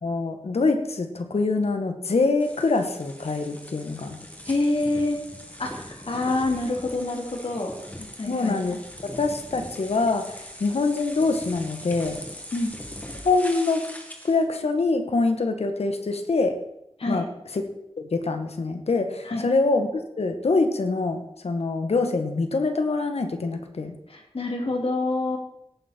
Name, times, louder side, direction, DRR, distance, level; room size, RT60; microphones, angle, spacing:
voice 1, 0.0-4.2 8.2-12.2 13.2-13.8 14.2-16.6 17.1-17.2 18.0-23.9, left 3 dB, 85° left, 6 dB, 1.5 m, -25 dB
sound 1, 2.4-14.4, equal, 15° left, 2.3 m, -41 dB
voice 2, 4.5-5.2 5.6-7.7 8.0-8.6 12.5-12.7 17.0-17.2 19.2-19.5 24.1-25.4, left 2 dB, 65° left, 1 dB, 3.2 m, -26 dB
17.5 x 9.3 x 4.5 m, 0.84 s
wide cardioid pair, 70°, 10 cm